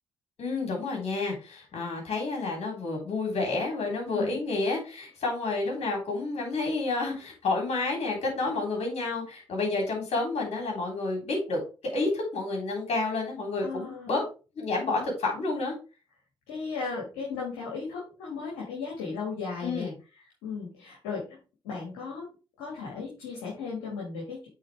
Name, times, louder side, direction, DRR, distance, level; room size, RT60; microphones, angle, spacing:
voice 1, 0.4-11.6 11.9-14.2 14.5-15.8 19.6-19.9, left 3 dB, 55° left, 1 dB, 3.4 m, -30 dB
voice 2, 4.1-4.4 13.6-14.2 16.5-19.9 20.4-21.4 21.6-22.3 22.6-24.5, left 5 dB, 75° left, -3 dB, 1.9 m, -36 dB
8.3 x 4.1 x 3.4 m, 0.32 s
hypercardioid pair, 45°, 13 cm